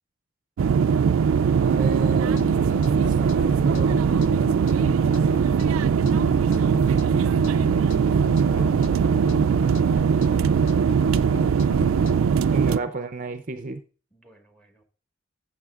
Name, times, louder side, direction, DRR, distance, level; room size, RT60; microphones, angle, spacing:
sound 1, 0.6-12.8, right 6 dB, 90° right, 0.3 m, -20 dB
voice 1, 1.6-4.0 8.4-9.5 12.5-13.8, right 3 dB, 40° right, 0.5 m, -31 dB
sound 2, 1.9-12.2, left 4 dB, 65° left, 0.4 m, -38 dB
voice 2, 14.1-14.8, equal, 5° left, 1.6 m, -55 dB
13.5 x 7.7 x 2.4 m
head